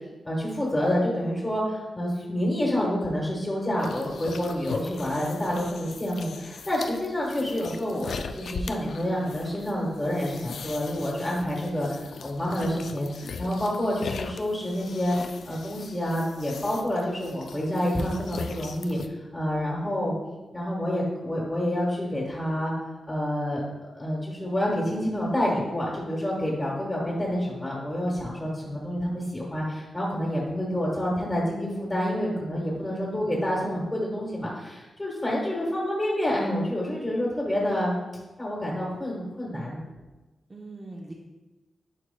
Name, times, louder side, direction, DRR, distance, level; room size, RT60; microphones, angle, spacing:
voice 1, 0.2-15.2 15.4-20.1 20.5-22.7 23.1-23.6 23.9-38.0 38.4-39.8, equal, 20° left, -4 dB, 1.3 m, -28 dB
sound 1, 3.8-19.1, left 5 dB, 75° left, 0.3 m, -40 dB
voice 2, 32.7-33.7 40.5-41.1, right 2 dB, 30° right, -2 dB, 0.7 m, -42 dB
10.0 x 4.5 x 2.2 m, 1.1 s
wide cardioid pair, 100°, 0 cm